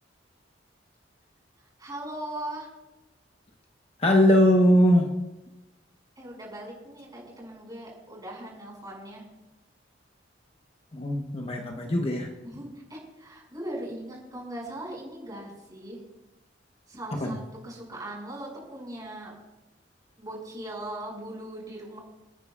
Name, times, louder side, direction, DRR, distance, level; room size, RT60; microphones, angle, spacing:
voice 1, 1.8-2.7 6.2-9.2 12.4-16.0 16.9-19.3 20.2-22.0, right 1 dB, 20° right, -4 dB, 5.9 m, -39 dB
voice 2, 4.0-5.1 10.9-12.3 17.1-17.4, equal, 35° left, 2 dB, 1.1 m, -21 dB
29.0 x 9.8 x 2.4 m, 1.0 s
head